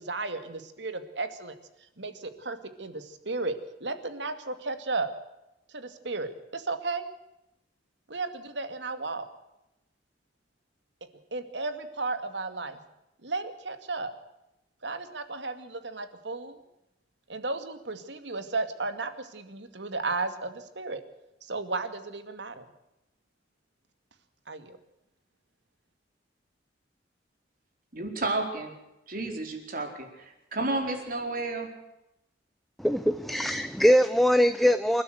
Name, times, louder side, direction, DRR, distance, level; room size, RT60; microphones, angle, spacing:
voice 1, 0.0-1.5 2.0-5.1 5.7-7.1 8.1-9.3 11.3-12.8 13.2-14.1 14.8-16.6 17.3-21.0 21.4-22.6 24.5-24.8, right 3 dB, 80° right, 9 dB, 2.4 m, -34 dB
voice 2, 27.9-28.7 29.1-31.7, right 2 dB, 50° right, 4 dB, 4.6 m, -31 dB
voice 3, 32.8-35.0, equal, ahead, 10 dB, 0.6 m, -22 dB
28.0 x 12.5 x 8.0 m, 0.90 s
head